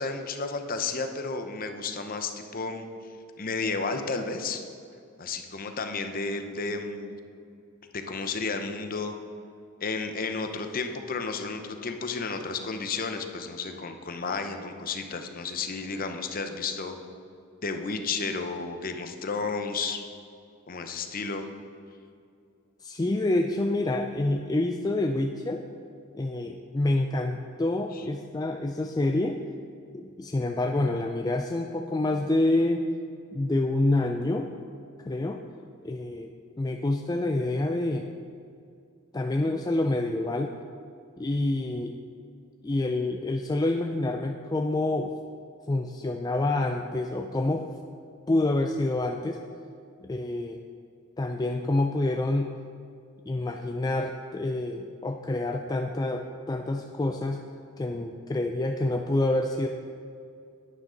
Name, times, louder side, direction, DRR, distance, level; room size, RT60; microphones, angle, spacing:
voice 1, 0.0-2.9 3.4-4.6 5.2-7.2 7.9-9.1 9.8-16.9 17.6-20.0 20.7-21.5 27.9-28.0, left 4 dB, 40° left, 6 dB, 0.8 m, -32 dB
voice 2, 22.8-25.6 26.1-29.4 29.9-32.9 33.3-34.5 35.0-35.4 35.8-36.3 36.6-38.1 39.1-40.5 41.2-41.9 42.6-45.1 45.7-47.6 48.3-49.4 50.0-50.6 51.2-52.5 53.3-57.4 57.8-59.7, left 2 dB, 20° left, 4 dB, 0.3 m, -27 dB
11.0 x 9.9 x 3.9 m, 2.4 s
head